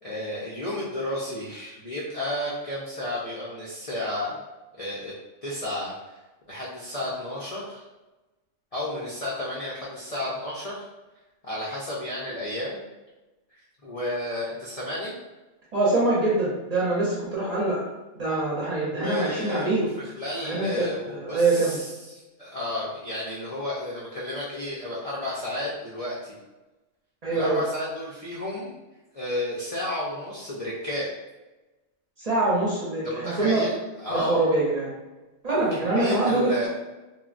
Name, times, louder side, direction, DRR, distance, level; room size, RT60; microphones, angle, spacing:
voice 1, 0.0-4.3 4.8-5.1 5.4-5.9 6.5-7.8 8.7-10.8 11.4-12.8 13.8-15.1 18.9-26.4 27.3-28.7 29.1-31.1 33.0-34.5 35.5-36.7, left 1 dB, 55° left, -6 dB, 0.4 m, -32 dB
voice 2, 15.7-17.8 18.2-19.8 20.4-20.9 21.1-21.8 27.2-27.6 32.2-33.7 34.1-34.9 35.4-36.7, right 2 dB, 45° right, -6 dB, 0.6 m, -24 dB
3.1 x 2.0 x 2.4 m, 1.1 s
omnidirectional pair, 1.2 m